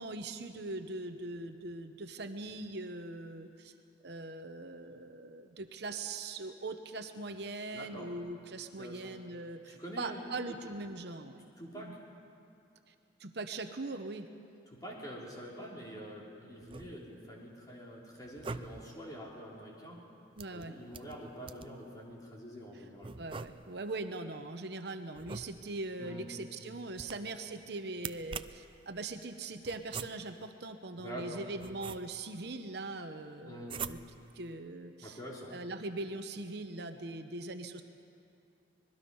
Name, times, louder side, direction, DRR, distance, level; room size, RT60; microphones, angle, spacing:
voice 1, 0.0-3.7 4.0-11.5 11.7-12.0 12.9-13.0 13.2-14.3 20.4-20.7 23.2-34.0 34.3-35.2 35.5-37.8, right 2 dB, 60° right, 7 dB, 0.9 m, -41 dB
voice 2, 7.7-8.1 8.8-9.1 9.7-10.2 11.6-12.0 14.7-20.0 20.5-23.2 26.0-26.2 27.0-27.1 31.0-31.4 33.4-33.8 35.0-35.6, equal, 20° left, -3 dB, 3.6 m, -46 dB
sound 1, 16.6-17.3 18.2-19.0 20.4-21.8 23.0-23.9 25.1-25.9 26.9-27.5 28.0-28.8 29.6-30.5 31.2-32.4 33.6-34.3, right 5 dB, 30° right, 0.4 m, -44 dB
25.5 x 20.5 x 5.5 m, 2.6 s
head